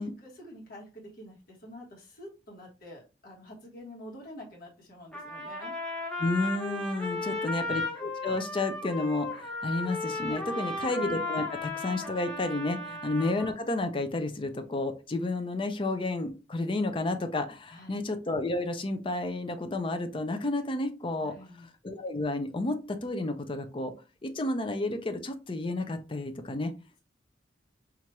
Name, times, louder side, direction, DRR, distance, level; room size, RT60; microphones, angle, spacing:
voice 1, 0.0-5.8 7.1-7.7 10.4-10.9 12.8-13.0 17.7-18.0 21.2-21.7, left 1 dB, 50° left, -3 dB, 1.2 m, -48 dB
Trumpet, 5.1-13.5, left 2 dB, 5° left, 0.9 m, -35 dB
voice 2, 6.2-21.3 21.8-23.9 24.2-26.7, left 2 dB, 30° left, 8 dB, 0.5 m, -31 dB
4.4 x 2.5 x 2.9 m, 0.30 s
head